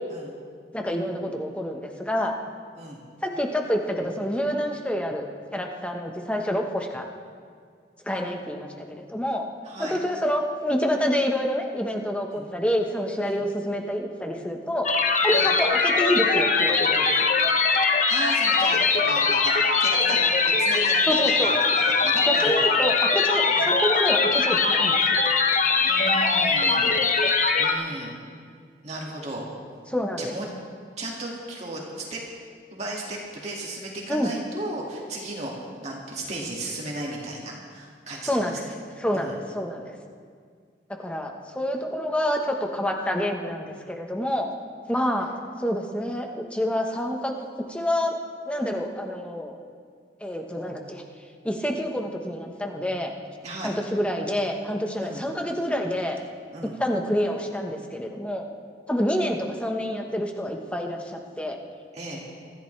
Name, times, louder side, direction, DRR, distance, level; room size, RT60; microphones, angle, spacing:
voice 1, 0.7-2.3 3.2-7.0 8.1-9.4 9.8-14.9 15.2-17.3 21.1-21.5 22.3-25.2 29.9-30.3 34.1-34.3 38.2-38.7 39.0-39.9 41.0-44.5 44.9-45.3 45.6-47.3 47.7-48.2 48.5-49.5 50.2-51.0 51.4-53.1 53.6-56.2 56.8-58.5 58.9-61.6, equal, 5° left, 2 dB, 1.3 m, -27 dB
voice 2, 9.6-10.0 12.3-12.4 13.2-13.4 15.3-15.5 18.1-22.6 23.5-23.7 25.8-27.0 27.6-28.1 28.8-29.4 30.2-30.5 31.0-32.2 32.7-38.7 39.1-39.3 53.4-53.7 55.0-55.2 56.5-56.7 61.9-62.2, right 1 dB, 40° right, -3 dB, 2.3 m, -35 dB
sound 1, 14.8-27.7, left 4 dB, 45° left, 1.1 m, -21 dB
25.0 x 14.0 x 3.4 m, 2.1 s
head